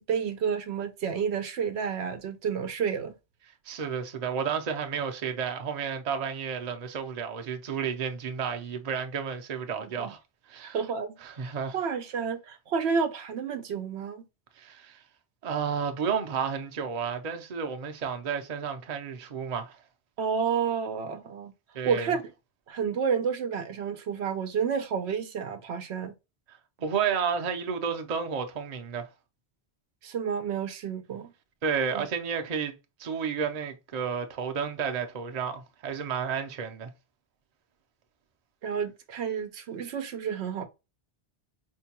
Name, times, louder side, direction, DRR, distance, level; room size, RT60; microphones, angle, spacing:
voice 1, 0.0-3.2 9.8-10.1 10.6-14.3 20.2-21.5 21.8-22.2 22.7-26.1 30.0-31.3 31.9-32.0 38.6-40.7, right 6 dB, 80° right, 0.8 m, -30 dB
voice 2, 3.7-10.2 10.5-10.8 11.2-11.8 14.6-15.0 15.4-19.8 21.7-22.2 26.5-29.1 31.6-32.7 33.0-36.9, right 6 dB, 45° right, 0.6 m, -31 dB
4.4 x 2.2 x 2.8 m
omnidirectional pair, 1.1 m